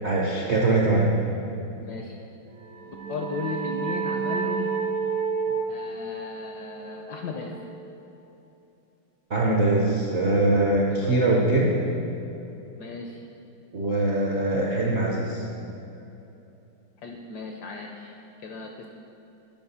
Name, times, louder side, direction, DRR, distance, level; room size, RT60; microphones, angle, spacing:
voice 1, 0.0-1.1 9.3-11.8 13.7-15.4, right 2 dB, 60° right, -3 dB, 0.7 m, -22 dB
voice 2, 1.8-2.2 2.9-4.7 5.7-7.5 10.9-11.1 12.8-13.2 17.0-18.9, left 4 dB, 75° left, 2 dB, 0.9 m, -36 dB
sound 1, 2.6-8.0, right 5 dB, 75° right, 1.5 m, -30 dB
9.5 x 4.7 x 5.5 m, 2.9 s
omnidirectional pair, 2.3 m